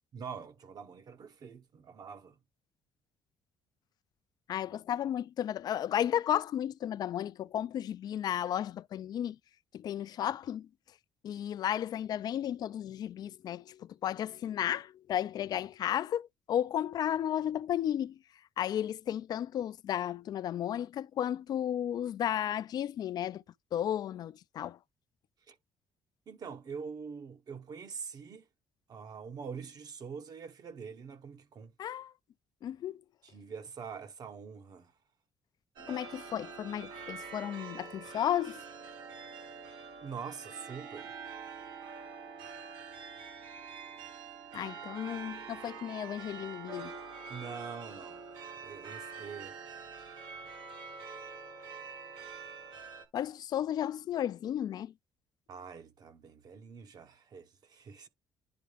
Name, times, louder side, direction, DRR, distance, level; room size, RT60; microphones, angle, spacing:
voice 1, 0.1-2.4 25.5-25.6 26.3-28.4 28.9-31.7 33.2-34.9 40.0-41.1 47.3-49.6 55.5-58.1, right 6 dB, 55° right, 1.2 m, -44 dB
voice 2, 4.5-9.4 9.7-10.7 11.2-18.2 18.6-23.4 23.7-24.8 31.8-32.1 32.6-33.0 35.9-38.6 44.5-47.0 53.1-54.9, left 10 dB, 60° left, 0.4 m, -33 dB
sound 1, 35.8-53.1, right 5 dB, 80° right, 1.6 m, -45 dB
10.5 x 3.5 x 3.4 m
supercardioid pair, 75°, 8 cm